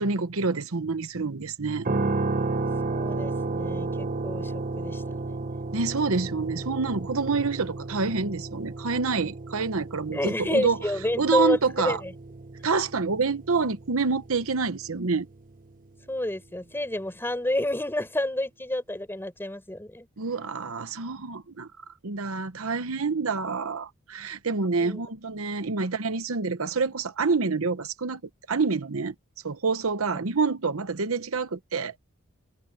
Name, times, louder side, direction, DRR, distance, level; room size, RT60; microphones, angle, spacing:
voice 1, 0.0-1.9 5.7-10.8 11.2-12.0 12.6-15.3 20.2-21.7 22.0-28.2 28.5-29.1 29.4-31.9, right 4 dB, 70° right, 1.0 m, -27 dB
sound 1, 1.9-15.9, right 3 dB, 40° right, 0.9 m, -33 dB
voice 2, 2.8-5.6 10.1-11.6 11.8-12.1 16.1-20.1 24.8-25.0, left 1 dB, 10° left, 4.9 m, -29 dB
head